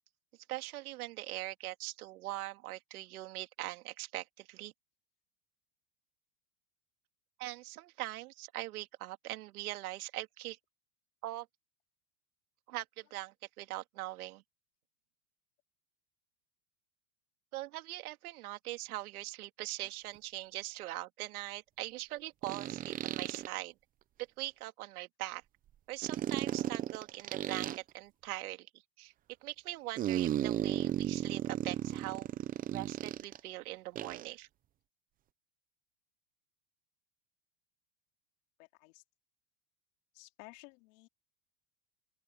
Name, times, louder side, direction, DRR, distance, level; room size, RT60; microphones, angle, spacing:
voice 1, 0.5-4.7 7.4-10.6 11.2-11.5 12.7-14.4 17.5-23.7 24.4-25.4 25.9-28.7 29.0-29.1 29.4-32.3 32.7-34.5, right 17 dB, 80° right, 2.8 m, -42 dB
sound 1, 19.8-19.9 22.4-23.5 26.0-27.8 30.0-33.4 33.9-34.3, right 12 dB, 20° right, 0.5 m, -35 dB
voice 2, 38.6-39.0 40.1-41.1, left 26 dB, 60° left, 3.3 m, -55 dB
open air
supercardioid pair, 140°, 43 cm